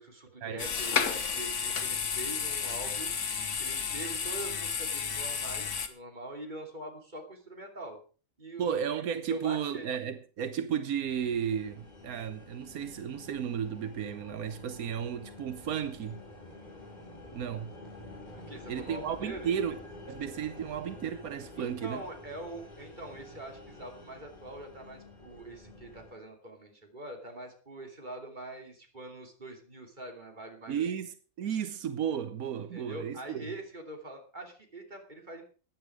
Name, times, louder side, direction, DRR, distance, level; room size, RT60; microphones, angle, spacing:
voice 1, 0.0-3.1 3.6-8.0 8.4-8.7 9.3-9.9 18.5-19.5 21.6-30.8 32.6-35.4, right 1 dB, 30° right, 3.1 m, -43 dB
sound 1, 0.6-5.9, left 6 dB, 60° left, 1.6 m, -32 dB
voice 2, 8.6-16.2 17.3-17.7 18.7-19.8 20.1-22.0 30.7-33.4, right 8 dB, 85° right, 1.3 m, -33 dB
sound 2, 11.1-26.1, left 2 dB, 30° left, 4.2 m, -49 dB
15.0 x 10.5 x 4.8 m
omnidirectional pair, 1.5 m